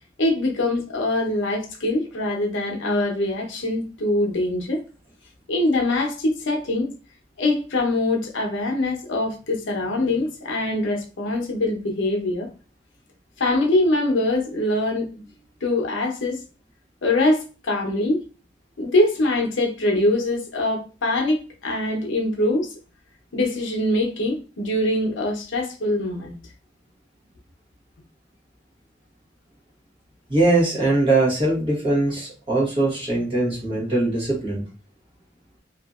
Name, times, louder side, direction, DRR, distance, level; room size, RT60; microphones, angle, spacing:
voice 1, 0.2-4.8 5.5-6.9 7.4-12.5 13.4-15.2 15.6-16.4 17.0-18.2 18.8-22.7 23.3-26.3, left 2 dB, 75° left, 1 dB, 0.7 m, -23 dB
voice 2, 30.3-34.6, right 2 dB, 25° right, -3 dB, 1.0 m, -21 dB
2.7 x 2.5 x 2.4 m, 0.34 s
head